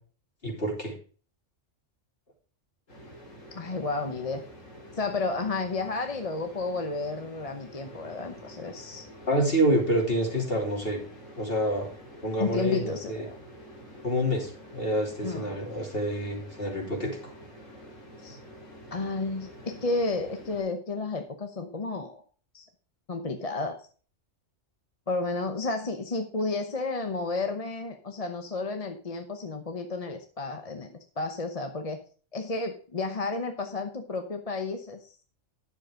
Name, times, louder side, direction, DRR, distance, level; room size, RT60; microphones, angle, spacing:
voice 1, 0.4-0.9 9.3-11.0 11.4-11.9 12.2-13.3 14.0-17.3, equal, 50° left, -1 dB, 3.5 m, -27 dB
sound 1, 2.9-20.6, equal, 85° left, 3.5 m, -48 dB
voice 2, 3.5-4.4 5.0-9.1 12.4-13.3 15.2-15.6 18.2-18.4 18.9-22.2 22.5-22.7 23.1-23.9 25.1-32.0 32.3-35.1, left 3 dB, 30° left, 5 dB, 0.9 m, -32 dB
10.5 x 7.0 x 5.0 m, 0.40 s
omnidirectional pair, 1.3 m